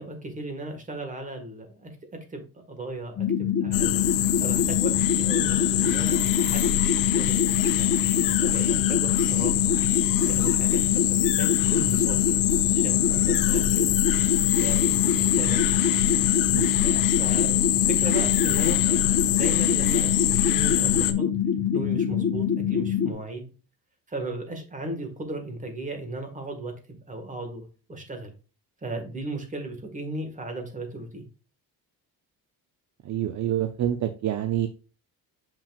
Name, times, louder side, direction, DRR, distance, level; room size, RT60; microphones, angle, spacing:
voice 1, 0.0-4.1 4.4-7.9 8.4-9.6 10.2-12.4 12.7-13.9 14.6-15.6 16.8-19.0 19.3-21.3 21.7-23.5 24.1-28.3 28.8-31.2, right 2 dB, 20° right, 4 dB, 1.7 m, -36 dB
sound 1, 3.2-23.1, left 8 dB, 35° left, 1.2 m, -25 dB
sound 2, 3.7-21.1, left 11 dB, 60° left, 0.7 m, -25 dB
voice 2, 33.0-34.7, right 11 dB, 50° right, 8 dB, 0.6 m, -27 dB
6.8 x 5.9 x 2.4 m, 0.34 s
cardioid pair, 150°, 38 cm